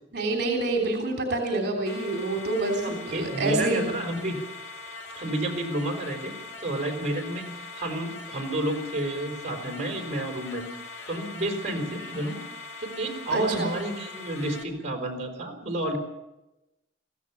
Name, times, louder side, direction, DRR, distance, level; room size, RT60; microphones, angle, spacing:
voice 1, 0.1-3.9 13.3-13.7, right 2 dB, 60° right, 1 dB, 3.2 m, -27 dB
sound 1, 1.9-14.6, left 3 dB, 85° left, 4.9 m, -41 dB
voice 2, 2.8-4.4 5.1-7.5 7.8-10.6 11.1-12.4 12.8-16.0, right 1 dB, 40° right, 2 dB, 4.3 m, -30 dB
22.5 x 16.0 x 7.1 m, 0.97 s
head